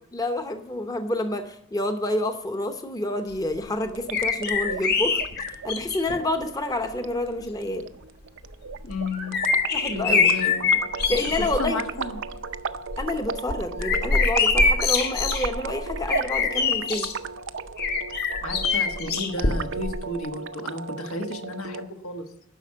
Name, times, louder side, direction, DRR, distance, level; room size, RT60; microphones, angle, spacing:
voice 1, 0.1-5.2 5.6-7.9 9.7-10.3 11.1-11.8 13.0-17.1, left 1 dB, 15° left, 7 dB, 0.8 m, -28 dB
sound 1, 3.9-21.9, right 5 dB, 60° right, 0.5 m, -36 dB
sound 2, 4.1-6.2 7.0-7.1 8.7-11.6 12.0-12.4 12.8-17.1 17.8-19.9 20.2-20.3, left 4 dB, 50° left, 1.4 m, -24 dB
voice 2, 8.8-9.5 9.9-10.8 11.1-12.2 18.4-22.3, left 2 dB, 85° left, 5 dB, 1.5 m, -33 dB
11.0 x 6.0 x 8.5 m, 0.73 s
head